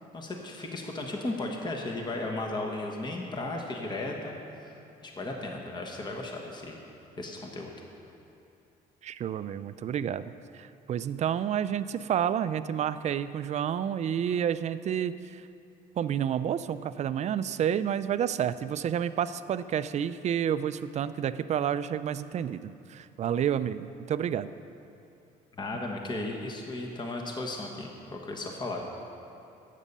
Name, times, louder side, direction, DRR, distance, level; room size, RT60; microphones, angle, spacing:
voice 1, 0.1-4.7 5.0-6.8 7.1-7.7 25.6-28.8, left 2 dB, 25° left, 1 dB, 1.3 m, -35 dB
voice 2, 9.0-15.5 16.0-24.5, right 9 dB, 40° right, 14 dB, 0.4 m, -30 dB
12.5 x 8.4 x 5.5 m, 2.7 s
cardioid pair, 110°, 17 cm